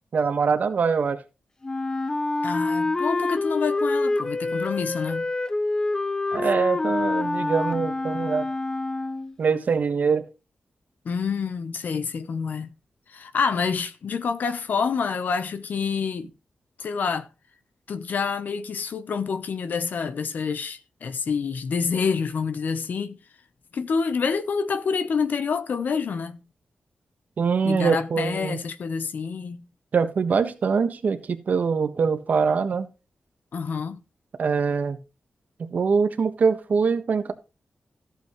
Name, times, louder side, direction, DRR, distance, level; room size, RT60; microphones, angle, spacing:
voice 1, 0.1-1.2 6.3-8.5 9.4-10.2 27.4-28.6 29.9-32.9 34.4-35.0 35.7-37.3, right 5 dB, 60° right, 1.4 m, -23 dB
Wind instrument woodwind instrument, 1.6-9.3, left 2 dB, 20° left, 0.6 m, -26 dB
voice 2, 2.4-5.2 11.0-12.7 13.1-16.3 16.8-17.3 17.9-23.2 23.7-26.4 27.6-29.7 33.5-34.0, left 5 dB, 70° left, 0.9 m, -27 dB
14.0 x 8.3 x 3.1 m
wide cardioid pair, 120°, 3 cm